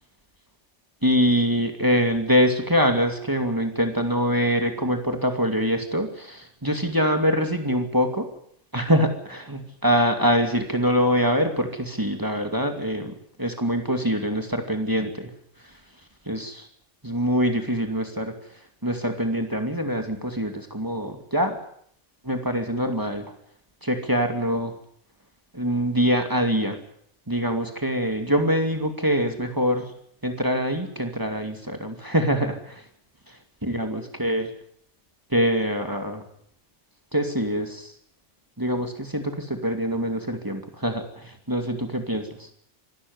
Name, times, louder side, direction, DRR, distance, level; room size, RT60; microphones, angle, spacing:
voice 1, 1.0-8.3 8.7-15.3 16.3-16.6 17.0-18.3 18.8-21.6 22.2-23.2 23.8-24.7 25.5-26.8 27.3-29.8 30.2-32.8 33.6-34.5 35.3-36.2 37.1-37.9 38.6-42.2, equal, 15° right, 5 dB, 2.5 m, -24 dB
25.0 x 13.0 x 9.6 m, 0.67 s
omnidirectional pair, 1.2 m